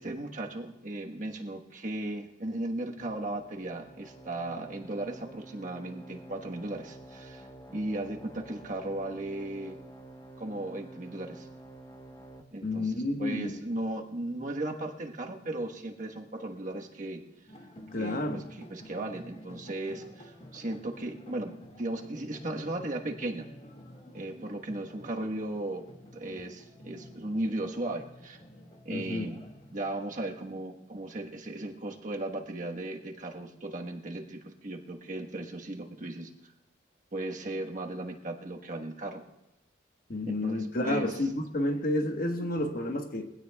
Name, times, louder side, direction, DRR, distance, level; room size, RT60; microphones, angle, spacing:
voice 1, 0.0-9.8 10.4-11.5 12.5-17.2 18.0-23.5 24.1-25.8 26.1-28.4 28.8-29.4 29.7-36.3 37.1-39.2 40.3-41.3, right 1 dB, 45° right, 2 dB, 1.3 m, -36 dB
sound 1, 3.0-12.4, right 1 dB, 20° left, 1.1 m, -49 dB
voice 2, 12.6-13.6 17.9-18.4 28.9-29.3 40.1-43.3, left 1 dB, 55° left, 5 dB, 1.3 m, -30 dB
sound 2, 17.5-30.0, left 1 dB, 35° left, 2.0 m, -51 dB
23.0 x 16.5 x 2.3 m, 0.92 s
head